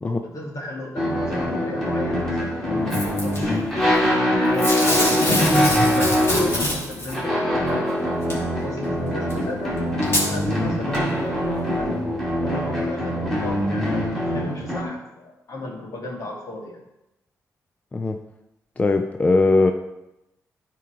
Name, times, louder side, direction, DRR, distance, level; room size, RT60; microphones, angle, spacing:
voice 1, 0.0-3.6 4.1-8.0 8.6-11.9 12.4-16.8, left 2 dB, 65° left, -1 dB, 2.5 m, -34 dB
sound 1, 1.0-14.8, equal, 5° left, 2.6 m, -23 dB
Packing tape duct tape / Tearing, 2.9-3.4 4.6-7.1 8.3-8.4 9.3-9.4 10.0-10.3 10.9-11.0, left 1 dB, 45° left, 3.2 m, -23 dB
voice 2, 18.8-19.7, left 3 dB, 25° left, 5 dB, 0.5 m, -19 dB
12.5 x 4.6 x 4.7 m, 0.90 s
cardioid pair, 120°, 6 cm